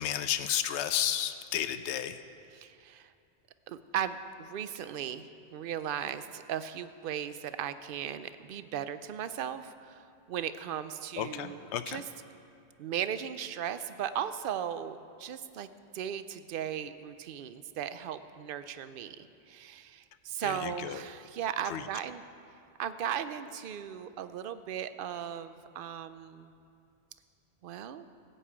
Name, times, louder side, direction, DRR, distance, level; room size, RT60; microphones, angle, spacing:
voice 1, 0.0-2.2 11.2-12.0 20.4-21.0 21.6-21.9, left 10 dB, 85° left, 11 dB, 0.9 m, -32 dB
voice 2, 2.6-3.1 3.7-5.3 5.5-10.0 10.3-11.6 11.9-12.0 12.8-15.7 15.9-22.2 22.8-26.5 27.6-28.0, right 9 dB, 60° right, 12 dB, 0.7 m, -37 dB
15.5 x 5.5 x 8.5 m, 2.5 s
omnidirectional pair, 1.1 m